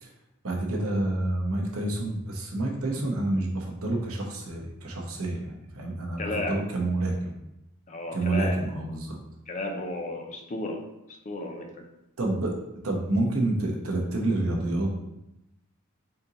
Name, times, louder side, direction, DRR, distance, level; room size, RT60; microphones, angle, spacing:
voice 1, 0.4-7.3 8.1-9.2 12.2-12.5 12.8-15.0, right 2 dB, 70° right, -1 dB, 0.9 m, -28 dB
voice 2, 6.2-6.6 7.9-8.6 9.5-10.8 11.3-11.8, left 2 dB, 35° left, 3 dB, 0.5 m, -33 dB
4.3 x 2.8 x 3.9 m, 0.88 s
head